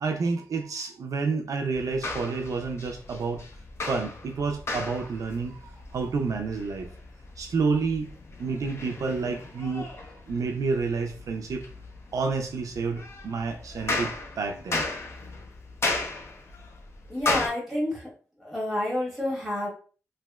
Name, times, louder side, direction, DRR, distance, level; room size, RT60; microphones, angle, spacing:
voice 1, 0.0-3.4 3.9-6.9 7.4-8.1 8.4-9.9 10.3-11.7 12.1-14.9, right 4 dB, 75° right, 0.4 m, -29 dB
sound 1, 1.7-17.5, left 2 dB, 50° left, 0.6 m, -35 dB
voice 2, 17.1-18.1 18.4-19.7, left 1 dB, ahead, 1.6 m, -29 dB
3.2 x 2.8 x 2.2 m
wide cardioid pair, 175°, 6 cm